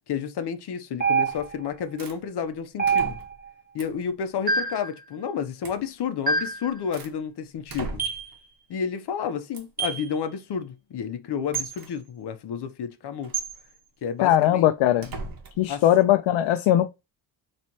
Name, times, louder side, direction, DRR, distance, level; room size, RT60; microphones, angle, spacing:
voice 1, 0.1-3.2 3.7-8.0 8.7-13.3 14.0-14.7 15.7-15.8, left 7 dB, 60° left, 0.9 m, -31 dB
sound 1, 1.0-1.7 2.8-3.5 4.5-4.9 6.3-6.7 8.0-8.3 9.8-10.1 11.5-11.7 13.3-13.5, right 5 dB, 20° right, 0.9 m, -25 dB
sound 2, 1.3-1.6 2.0-2.2 2.8-3.5 3.8-4.1 5.6-5.8 6.4-7.2 7.7-8.4 9.5-9.8 11.5-11.9 13.2-13.5 15.0-15.6, right 3 dB, 45° right, 1.4 m, -39 dB
voice 2, 14.2-15.1 15.6-16.9, left 12 dB, 75° left, 0.6 m, -20 dB
4.3 x 3.2 x 3.0 m
cardioid pair, 120°, 47 cm